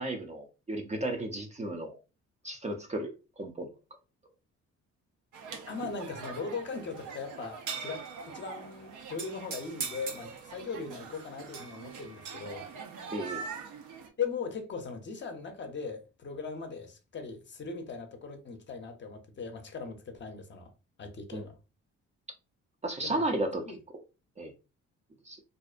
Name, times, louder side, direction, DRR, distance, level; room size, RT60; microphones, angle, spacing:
voice 1, 0.0-2.0 2.4-3.7 13.1-13.4 21.3-21.4 22.8-23.6 24.4-24.5 25.3-25.4, right 1 dB, 25° right, 0.4 m, -34 dB
sound 1, 5.3-14.1, right 5 dB, 80° right, 0.6 m, -42 dB
voice 2, 5.7-12.7 14.2-20.7 21.0-21.6 23.0-23.3 23.7-23.8, left 5 dB, 40° left, 0.6 m, -39 dB
2.5 x 2.0 x 2.4 m
cardioid pair, 90°, 30 cm